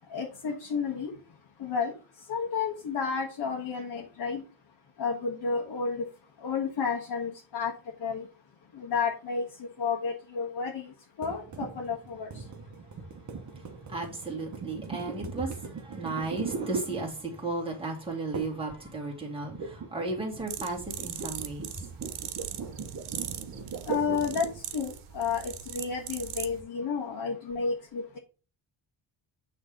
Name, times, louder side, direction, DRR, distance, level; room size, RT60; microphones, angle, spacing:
voice 1, 0.1-1.1 1.6-1.9 2.3-4.4 5.0-6.1 6.4-7.7 8.0-8.3 8.8-9.4 9.8-10.8 11.2-12.3 23.9-24.5 24.7-28.2, left 5 dB, 50° left, 1.4 m, -31 dB
sound 1, 11.2-17.5 18.3-18.7 19.0-24.7, right 5 dB, 35° right, 1.0 m, -39 dB
voice 2, 13.6-21.9, right 2 dB, 10° right, 2.1 m, -35 dB
sound 2, 20.5-26.6, right 10 dB, 80° right, 1.0 m, -40 dB
8.9 x 3.4 x 5.2 m
wide cardioid pair, 180°, 49 cm